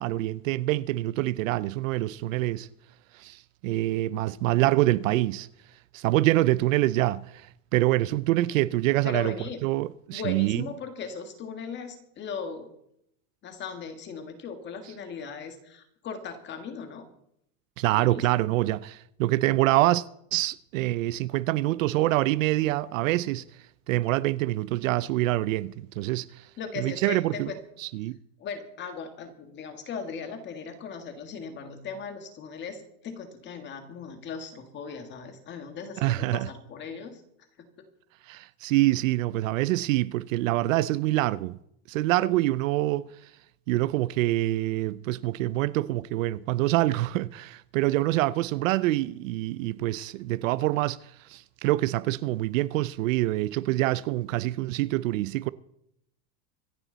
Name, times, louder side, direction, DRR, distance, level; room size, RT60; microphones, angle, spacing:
voice 1, 0.0-2.7 3.1-5.5 5.9-9.4 9.6-10.7 17.8-20.0 20.3-23.4 23.9-26.5 26.8-27.5 27.8-28.2 36.0-36.5 38.3-41.6 41.9-43.3 43.7-55.5, right 17 dB, 60° right, 0.5 m, -26 dB
voice 2, 9.0-9.6 10.1-12.7 13.4-17.1 17.9-18.3 26.6-27.6 28.4-37.2 37.6-37.7, left 5 dB, 25° left, 1.9 m, -38 dB
25.5 x 10.5 x 4.0 m
supercardioid pair, 165°, 46 cm